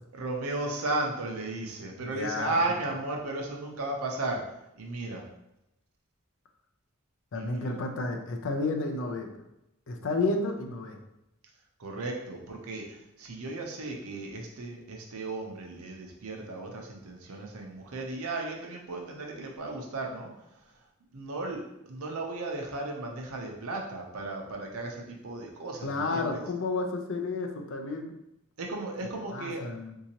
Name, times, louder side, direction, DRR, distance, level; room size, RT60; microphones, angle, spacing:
voice 1, 0.1-4.4 4.8-5.3 7.3-7.8 11.8-20.5 21.1-26.4 28.6-29.6, right 2 dB, 80° right, 1 dB, 0.7 m, -35 dB
voice 2, 2.0-2.8 7.3-9.3 9.9-11.0 25.8-28.2 29.3-30.0, left 3 dB, 60° left, 4 dB, 0.5 m, -31 dB
3.7 x 2.8 x 2.8 m, 0.85 s
head